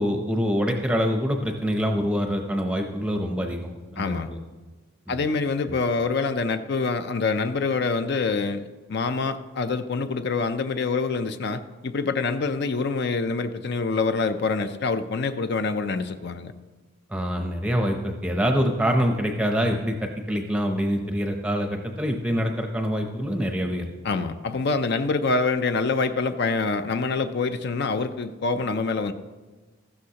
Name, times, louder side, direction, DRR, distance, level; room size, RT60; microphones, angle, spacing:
voice 1, 0.0-4.4 5.1-5.2 5.7-5.8 17.1-23.9, equal, 5° right, 2 dB, 0.6 m, -25 dB
voice 2, 4.0-4.3 5.1-8.6 8.9-16.5 24.0-29.1, left 4 dB, 50° left, 10 dB, 0.5 m, -26 dB
15.0 x 12.5 x 2.9 m, 1.3 s
head